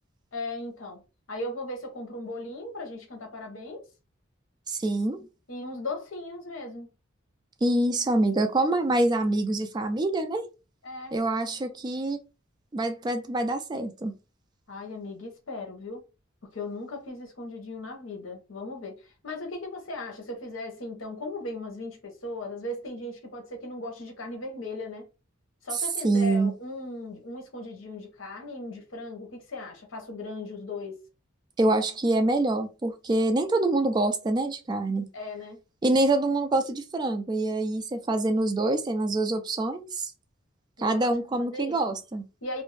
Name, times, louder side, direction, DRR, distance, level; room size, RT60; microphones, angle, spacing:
voice 1, 0.3-1.0 1.3-3.8 5.5-6.9 10.8-11.2 14.7-16.0 16.5-25.1 25.6-31.0 35.1-35.6 40.8-41.1 41.4-41.8 42.4-42.6, left 2 dB, 70° left, 0.9 m, -37 dB
voice 2, 4.7-5.3 7.6-10.4 11.1-12.2 12.7-14.1 26.0-26.5 31.6-35.1 35.8-40.1 40.8-42.2, right 2 dB, 20° right, 0.3 m, -25 dB
2.4 x 2.1 x 3.1 m
head